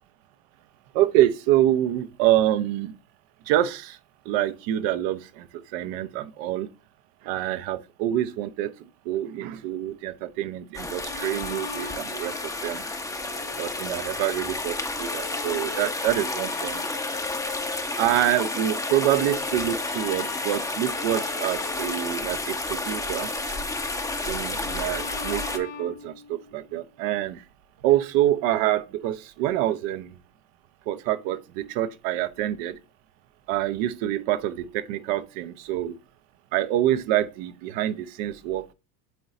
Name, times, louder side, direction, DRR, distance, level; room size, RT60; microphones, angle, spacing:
voice 1, 0.9-2.9 3.5-4.0 4.2-6.7 7.2-12.8 13.6-16.8 17.7-23.3 24.3-27.4 27.8-30.1 30.9-32.8 33.5-35.9 36.5-38.7, right 13 dB, 60° right, 0.8 m, -26 dB
sound 1, 10.7-25.6, left 2 dB, 5° left, 0.7 m, -31 dB
Bowed string instrument, 11.0-26.7, left 8 dB, 65° left, 2.3 m, -41 dB
9.5 x 3.9 x 2.6 m
hypercardioid pair, 85°, 50 cm